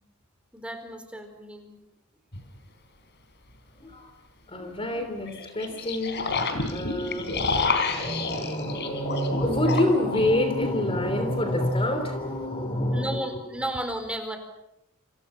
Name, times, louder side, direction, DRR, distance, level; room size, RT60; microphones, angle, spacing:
voice 1, 0.5-1.8 12.9-14.4, right 1 dB, 5° right, 6 dB, 4.5 m, -33 dB
sound 1, 2.3-2.4 5.2-10.8, left 3 dB, 50° left, 4.0 m, -29 dB
voice 2, 3.8-4.1 4.5-6.4 6.7-13.3, left 1 dB, 25° left, 7 dB, 3.2 m, -27 dB
29.5 x 27.5 x 5.6 m, 0.80 s
head